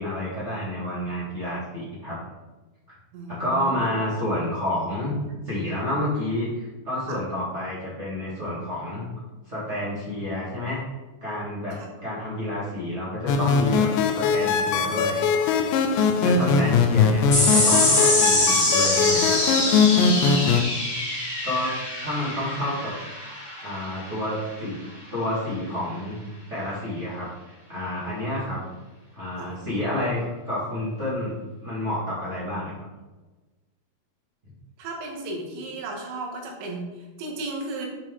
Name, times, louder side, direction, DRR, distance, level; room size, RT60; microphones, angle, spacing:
voice 1, 0.0-2.2 3.3-5.2 5.4-9.0 9.5-10.8 11.2-11.8 12.0-15.2 16.2-19.4 21.4-21.7 22.0-22.9 23.6-24.8 25.1-26.2 26.5-28.6 29.1-31.4 31.6-32.7, left 1 dB, 30° right, -10 dB, 1.2 m, -29 dB
voice 2, 3.1-3.9 7.1-7.2 11.7-11.9 16.3-16.5 20.1-20.7 29.4-29.5 34.8-37.9, right 2 dB, 80° right, 0 dB, 3.5 m, -35 dB
sound 1, 13.3-20.6, left 5 dB, 80° left, 2.7 m, -21 dB
sound 2, 17.3-24.1, left 2 dB, 40° left, 1.3 m, -24 dB
9.6 x 4.5 x 3.8 m, 1.2 s
omnidirectional pair, 5.2 m